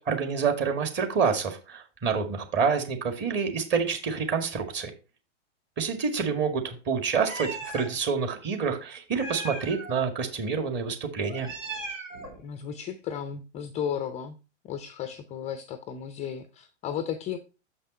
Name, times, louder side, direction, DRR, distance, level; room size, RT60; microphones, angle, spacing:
voice 1, 0.0-4.9 5.8-11.5, right 5 dB, 30° right, 5 dB, 1.9 m, -27 dB
Meow, 7.3-7.9 9.1-10.0 11.3-12.4, right 2 dB, 90° right, 2.6 m, -37 dB
voice 2, 12.4-14.4 14.6-17.4, left 8 dB, 20° left, 10 dB, 0.5 m, -34 dB
7.0 x 5.5 x 4.3 m, 0.32 s
hypercardioid pair, 110°, 37 cm